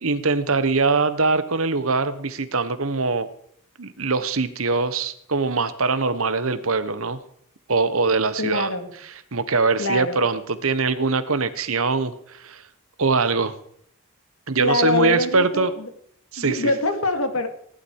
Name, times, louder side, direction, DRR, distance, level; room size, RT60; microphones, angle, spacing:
voice 1, 0.0-3.3 3.8-7.2 7.7-8.7 9.3-12.6 13.0-13.5 14.5-15.7 16.3-16.6, right 4 dB, 75° right, 12 dB, 1.2 m, -22 dB
voice 2, 8.4-8.9 9.8-10.2 14.6-15.9 16.4-17.5, left 2 dB, 75° left, 8 dB, 2.1 m, -24 dB
18.0 x 11.5 x 4.8 m, 0.66 s
head